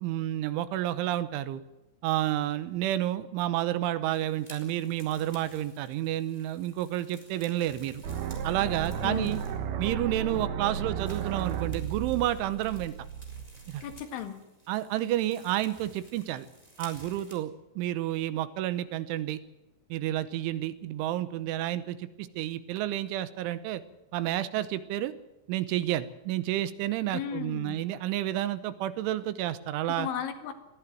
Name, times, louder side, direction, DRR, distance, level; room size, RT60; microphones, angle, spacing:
voice 1, 0.0-1.6 2.0-8.0 8.4-9.4 9.8-12.9 13.7-13.8 14.7-16.5 16.8-19.4 19.9-23.8 24.1-25.1 25.5-30.1, right 13 dB, 80° right, 14 dB, 3.2 m, -30 dB
sound 1, 4.1-9.7 10.3-10.4 11.0-17.4, right 1 dB, 10° right, 3.6 m, -54 dB
sound 2, 8.0-14.0, right 7 dB, 65° right, 2.8 m, -34 dB
voice 2, 9.0-9.3 13.8-14.4 27.1-27.8 29.9-30.5, left 9 dB, 75° left, 7 dB, 4.2 m, -35 dB
20.5 x 14.5 x 9.2 m, 0.96 s
omnidirectional pair, 5.7 m